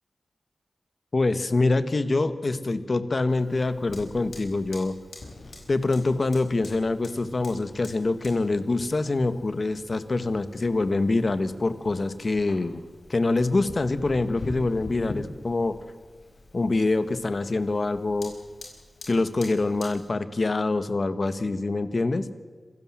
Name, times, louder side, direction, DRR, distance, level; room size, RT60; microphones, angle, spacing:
voice 1, 1.1-5.0 5.7-12.8 13.1-15.7 16.5-18.3 19.1-22.3, left 3 dB, 55° left, 11 dB, 1.6 m, -25 dB
Fire, 3.3-20.1, left 2 dB, 80° left, 5.3 m, -45 dB
26.5 x 16.5 x 7.7 m, 1.5 s
cardioid pair, 55°, 0 cm